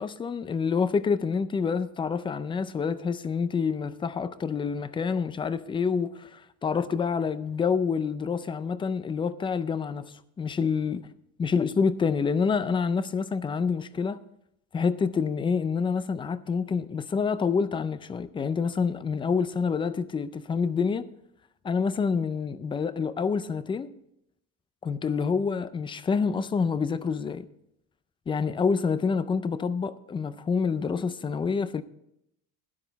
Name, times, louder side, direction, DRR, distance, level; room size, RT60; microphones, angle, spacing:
voice 1, 0.0-11.0 11.4-14.2 14.7-21.1 21.6-23.9 24.8-27.5 28.3-31.8, left 5 dB, 15° left, 0.3 m, -27 dB
12.5 x 10.5 x 4.0 m
cardioid pair, 155°, 35 cm